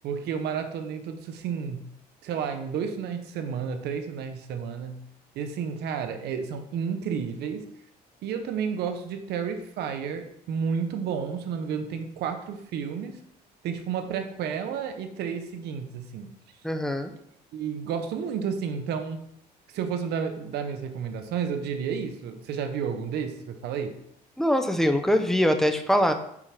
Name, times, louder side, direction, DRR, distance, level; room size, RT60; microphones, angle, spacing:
voice 1, 0.0-1.8 2.2-5.0 5.3-7.7 8.2-13.2 13.6-16.4 17.5-19.2 19.7-24.0, right 7 dB, 75° right, 7 dB, 1.0 m, -31 dB
voice 2, 16.6-17.1 24.4-26.1, equal, ahead, 6 dB, 0.9 m, -23 dB
7.5 x 4.7 x 5.9 m, 0.72 s
cardioid pair, 110°, 17 cm